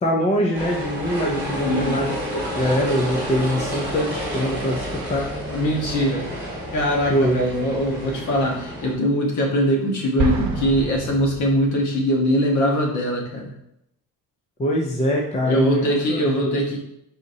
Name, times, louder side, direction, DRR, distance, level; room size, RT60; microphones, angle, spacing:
voice 1, 0.0-5.3 7.1-7.4 14.6-16.5, equal, 20° left, 0 dB, 0.4 m, -23 dB
sound 1, 0.5-8.9, equal, 5° right, 1.7 m, -30 dB
voice 2, 1.6-2.0 5.5-6.3 6.7-13.5 15.4-16.8, equal, 50° left, 0 dB, 1.2 m, -22 dB
Explosion, 10.2-12.0, right 3 dB, 50° right, 0.8 m, -27 dB
4.8 x 4.0 x 2.7 m, 0.79 s
cardioid pair, 175°, 37 cm